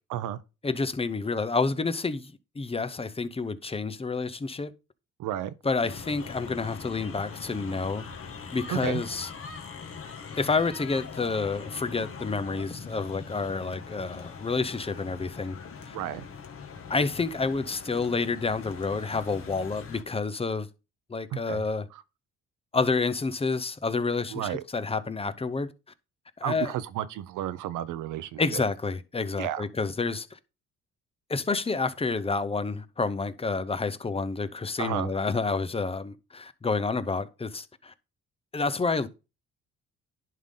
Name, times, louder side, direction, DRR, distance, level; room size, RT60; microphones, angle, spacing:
voice 1, 0.6-4.7 5.6-8.1 8.5-9.3 10.3-15.6 15.9-16.0 16.9-20.7 21.1-21.9 22.7-25.7 26.4-26.7 28.4-30.4 31.3-37.9 38.5-39.1, left 4 dB, 20° left, 0.6 m, -29 dB
voice 2, 5.2-5.5 8.7-9.0 15.9-16.2 21.3-21.6 21.9-22.0 24.3-24.6 26.4-28.6 29.4-29.6 34.8-35.1, right 12 dB, 85° right, 0.7 m, -32 dB
sound 1, 5.8-20.0, left 5 dB, 45° left, 1.5 m, -42 dB
11.0 x 3.7 x 3.8 m
cardioid pair, 90°, 30 cm